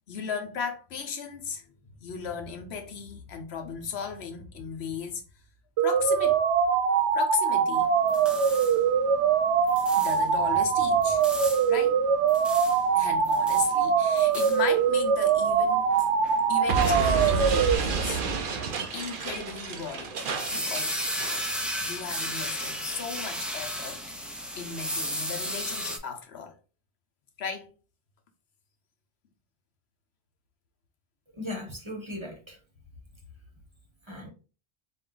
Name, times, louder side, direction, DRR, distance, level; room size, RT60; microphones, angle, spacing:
voice 1, 0.1-1.6 1.9-5.2 5.8-6.4 7.1-7.9 10.0-11.2 11.7-12.0 12.9-15.8 16.5-18.2 18.9-20.2 20.5-21.0 21.8-24.0 24.6-26.5 27.4-27.7, left 6 dB, 70° left, 1.0 m, -36 dB
sound 1, 5.8-17.8, right 6 dB, 80° right, 1.0 m, -23 dB
sound 2, 7.7-26.0, equal, ahead, 0.3 m, -36 dB
Explosion, 16.7-21.5, right 4 dB, 55° right, 0.7 m, -30 dB
voice 2, 31.3-32.6 34.0-34.3, left 1 dB, 25° right, 1.1 m, -37 dB
4.4 x 2.3 x 3.8 m
omnidirectional pair, 1.1 m